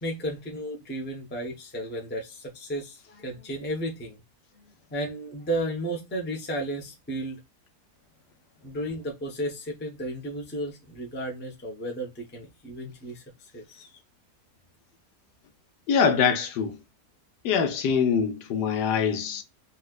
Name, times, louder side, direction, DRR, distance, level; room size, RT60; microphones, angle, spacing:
voice 1, 0.0-4.2 4.5-7.4 8.6-13.2 13.5-14.0, right 1 dB, 15° left, 0.4 m, -33 dB
voice 2, 15.9-16.8 17.4-19.4, left 6 dB, 80° left, 1.3 m, -24 dB
4.1 x 2.4 x 2.3 m
omnidirectional pair, 1.8 m